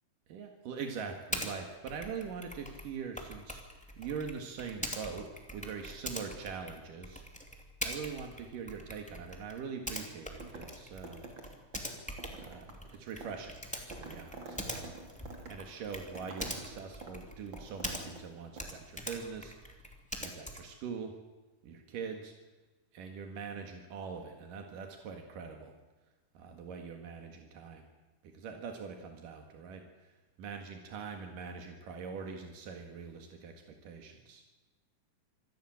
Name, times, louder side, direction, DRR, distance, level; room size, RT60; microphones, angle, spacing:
voice 1, 0.3-3.6 4.0-7.2 7.8-11.3 12.4-14.9 15.5-19.8 20.2-21.2 21.6-22.3 22.9-25.7 26.4-27.9 28.2-30.1 30.4-34.4, right 6 dB, 85° right, 4 dB, 3.5 m, -43 dB
Typing, 1.3-1.5 1.9-18.3 18.5-20.8, equal, ahead, 2.3 m, -43 dB
sound 1, 10.4-10.8 11.0-18.3 18.6-18.7, right 3 dB, 35° right, 3.4 m, -48 dB
26.0 x 14.5 x 8.8 m, 1.2 s
omnidirectional pair, 3.7 m